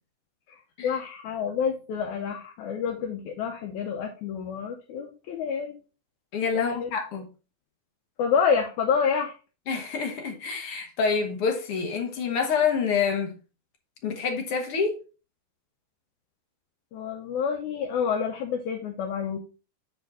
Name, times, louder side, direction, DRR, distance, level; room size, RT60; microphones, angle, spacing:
voice 1, 0.5-5.8 6.5-6.9 8.2-9.3 16.9-19.4, left 6 dB, 75° left, 2.1 m, -28 dB
voice 2, 6.3-7.3 9.7-13.4 14.0-15.0, left 5 dB, 60° left, 1.6 m, -27 dB
7.2 x 5.1 x 3.7 m
omnidirectional pair, 3.6 m